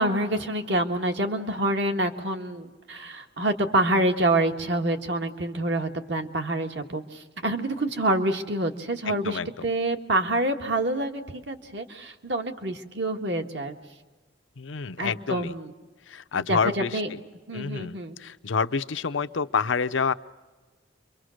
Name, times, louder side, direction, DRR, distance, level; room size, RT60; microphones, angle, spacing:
voice 1, 0.0-13.7 15.0-15.7 16.5-16.6 16.9-17.1 17.5-18.2, right 1 dB, 65° right, 5 dB, 1.7 m, -27 dB
voice 2, 9.0-9.7 14.6-15.6 16.1-17.0 17.5-20.1, left 5 dB, 85° left, 11 dB, 0.7 m, -28 dB
29.0 x 24.5 x 6.4 m, 1.2 s
head